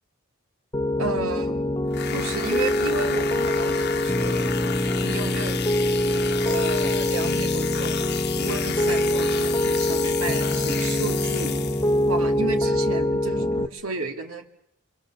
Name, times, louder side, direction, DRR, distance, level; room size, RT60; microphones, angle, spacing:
Piano, 0.7-13.7, left 1 dB, 15° left, 0.9 m, -24 dB
voice 1, 1.0-1.6 2.1-4.5 5.0-5.6 6.4-8.0 8.4-11.6 12.1-14.5, right 3 dB, 75° right, 5 dB, 2.2 m, -32 dB
sound 1, 1.9-12.1, left 9 dB, 55° left, 1.1 m, -32 dB
26.5 x 26.0 x 7.0 m, 0.79 s
head